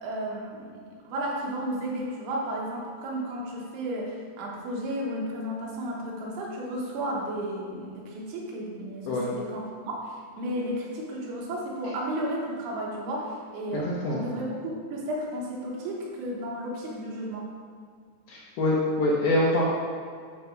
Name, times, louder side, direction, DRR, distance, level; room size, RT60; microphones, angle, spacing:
voice 1, 0.0-17.5, right 1 dB, 90° right, -3 dB, 3.7 m, -33 dB
voice 2, 13.7-14.3 18.3-19.6, left 1 dB, 70° left, -5 dB, 2.4 m, -25 dB
9.3 x 3.2 x 6.7 m, 2.1 s
omnidirectional pair, 5.3 m